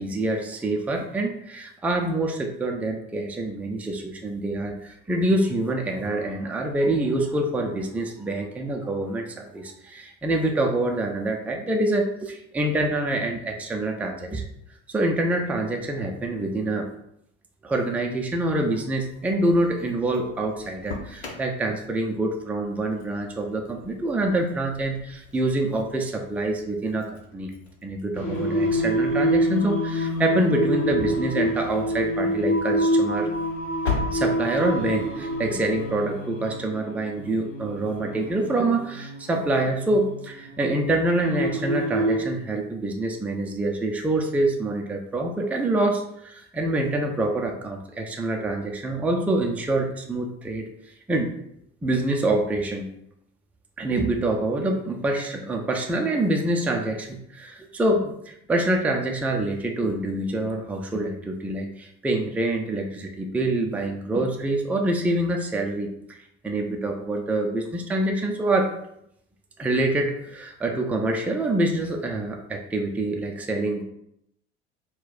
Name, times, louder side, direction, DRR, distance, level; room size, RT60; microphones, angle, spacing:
voice 1, 0.0-14.4 14.9-16.9 17.6-27.5 27.8-33.3 34.1-50.7 51.1-51.3 51.8-52.9 53.8-66.2 66.4-68.8 69.6-73.8, right 2 dB, 5° right, 2 dB, 0.4 m, -26 dB
Engine starting, 19.0-36.0, left 4 dB, 80° left, 0.8 m, -40 dB
Singing, 28.1-42.2, equal, 50° left, 1.5 m, -27 dB
4.1 x 2.2 x 4.0 m, 0.74 s
figure-of-eight pair, 70°, 32 cm